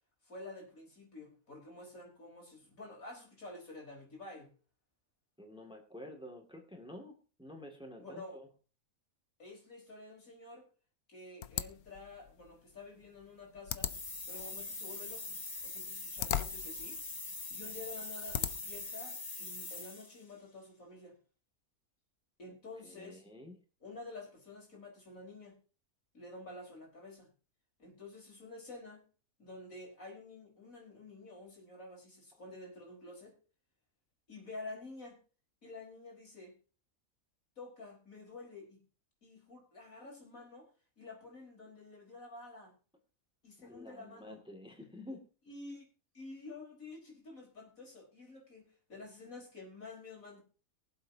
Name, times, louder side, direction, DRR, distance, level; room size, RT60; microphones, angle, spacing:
voice 1, 0.2-4.5 8.0-8.4 9.4-10.7 11.1-13.9 14.3-15.4 15.6-17.0 17.5-21.2 22.4-23.2 23.8-25.6 26.1-27.3 27.8-29.1 29.4-33.3 34.3-35.2 35.6-36.5 37.6-38.8 39.2-40.7 41.0-42.7 43.4-44.4 45.5-45.9 46.1-50.4, left 2 dB, 70° left, -1 dB, 5.1 m, -50 dB
voice 2, 5.4-8.5 22.8-23.6 43.6-45.2, left 1 dB, 5° right, 3 dB, 2.2 m, -49 dB
sound 1, 11.4-18.9, left 11 dB, 85° left, 1.2 m, -41 dB
sound 2, 13.8-20.2, left 3 dB, 20° left, 0.7 m, -43 dB
23.5 x 7.8 x 2.8 m, 0.36 s
omnidirectional pair, 1.5 m